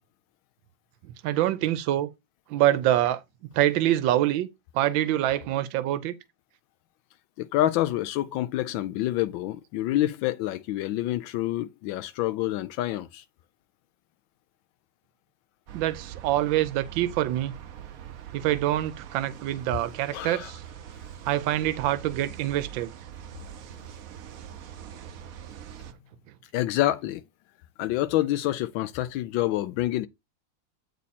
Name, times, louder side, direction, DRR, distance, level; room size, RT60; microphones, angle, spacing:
voice 1, 1.2-2.1 2.5-3.2 3.5-4.5 4.7-6.2 15.7-17.5 18.3-20.6 21.2-22.9, right 13 dB, 90° right, 1.4 m, -25 dB
voice 2, 7.4-13.2 20.1-20.5 26.5-27.2 27.8-30.1, left 14 dB, 90° left, 1.3 m, -27 dB
sound 1, 15.7-25.9, right 10 dB, 60° right, 1.0 m, -43 dB
8.5 x 4.1 x 4.1 m
omnidirectional pair, 2.0 m